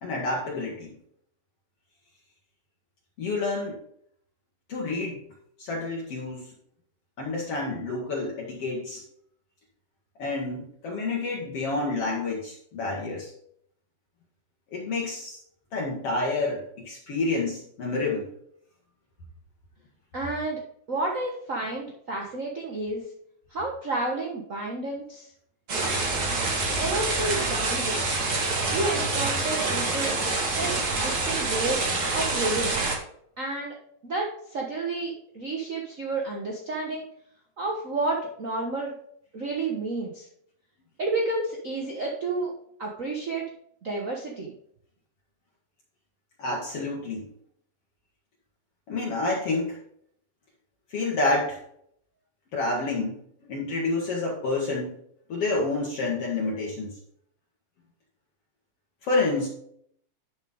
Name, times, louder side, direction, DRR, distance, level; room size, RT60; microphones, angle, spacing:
voice 1, 0.0-0.9 3.2-3.8 4.7-5.2 5.6-6.5 7.2-9.0 10.2-13.3 14.7-15.4 15.7-18.3 46.4-47.3 48.9-49.8 50.9-51.6 52.5-54.9 55.3-56.9 59.0-59.5, left 3 dB, 55° left, -2 dB, 2.4 m, -29 dB
voice 2, 20.1-20.6 20.9-23.0 23.5-25.3 26.8-28.0 28.7-30.2 30.5-31.9 32.1-32.8 33.4-33.7 34.0-37.1 37.6-38.9 39.3-40.3 41.0-42.5 42.8-43.4 43.8-44.5, right 2 dB, 55° right, -1 dB, 0.9 m, -30 dB
sound 1, 25.7-33.0, right 3 dB, 35° right, 1.8 m, -26 dB
11.0 x 6.6 x 3.6 m, 0.68 s
omnidirectional pair, 3.4 m